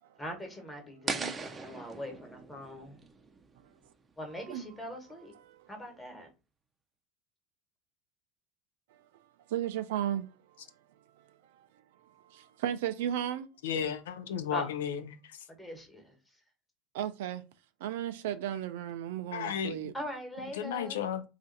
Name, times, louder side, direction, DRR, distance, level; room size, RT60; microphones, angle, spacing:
voice 1, 0.2-3.0 4.2-5.3 5.7-6.3 14.5-14.7 15.5-16.4 19.9-21.0, equal, 10° left, 1.2 m, -42 dB
sound 1, 1.1-4.1, right 4 dB, 25° right, 0.5 m, -39 dB
voice 2, 9.5-10.6 11.2-11.7 12.0-13.5 16.9-17.4 17.8-19.9, right 11 dB, 80° right, 0.3 m, -35 dB
voice 3, 13.6-15.4 19.3-19.8 20.6-21.2, left 8 dB, 85° left, 0.4 m, -33 dB
2.5 x 2.4 x 3.9 m
hypercardioid pair, 90°, 0 cm